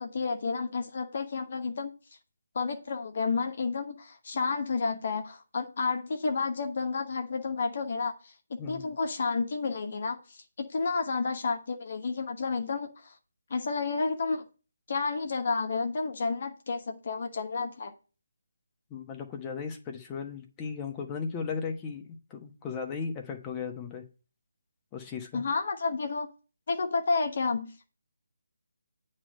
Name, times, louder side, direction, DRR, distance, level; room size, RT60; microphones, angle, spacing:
voice 1, 0.0-1.9 2.5-8.3 8.7-13.1 13.5-14.4 14.9-17.9 25.3-26.3 26.7-27.9, left 4 dB, 50° left, 5 dB, 1.0 m, -31 dB
voice 2, 8.6-8.9 18.9-22.0 22.3-24.0 24.9-25.4, left 5 dB, 15° left, 3 dB, 1.1 m, -36 dB
8.7 x 3.2 x 6.3 m, 0.36 s
figure-of-eight pair, 155°, 0 cm